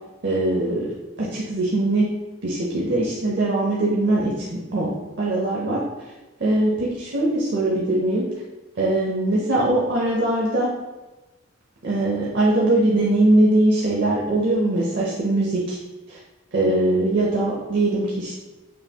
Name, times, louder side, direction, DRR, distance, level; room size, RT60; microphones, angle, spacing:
voice 1, 0.2-0.9 1.2-2.1 2.4-5.8 6.4-8.3 8.8-10.7 11.8-15.8 16.1-16.2 16.5-18.4, right 2 dB, 50° right, -4 dB, 0.6 m, -21 dB
5.4 x 2.3 x 2.7 m, 1.1 s
head